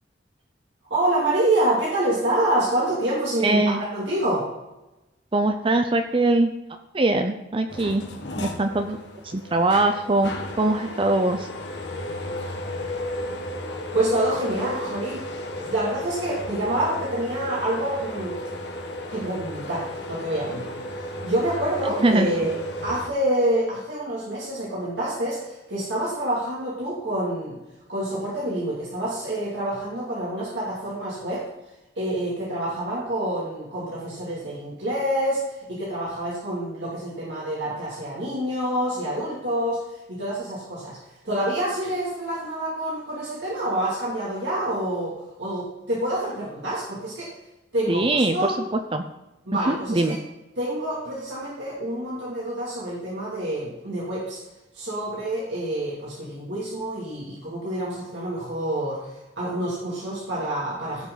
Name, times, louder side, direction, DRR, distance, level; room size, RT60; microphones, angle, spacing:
voice 1, 0.9-4.5 13.9-18.4 19.1-27.6 27.9-31.4 32.0-39.8 40.1-41.0 41.2-47.3 47.7-48.6 49.5-50.2 50.6-54.4 54.7-61.1, right 1 dB, 75° right, -6 dB, 2.9 m, -27 dB
voice 2, 3.4-3.8 5.3-6.5 6.9-8.0 8.4-10.3 10.6-11.5 22.0-22.3 47.9-49.0 49.7-50.2, right 2 dB, 30° right, 7 dB, 0.6 m, -22 dB
sound 1, 7.7-23.1, left 1 dB, 65° left, 1.7 m, -34 dB
16.0 x 6.1 x 4.1 m, 0.98 s
head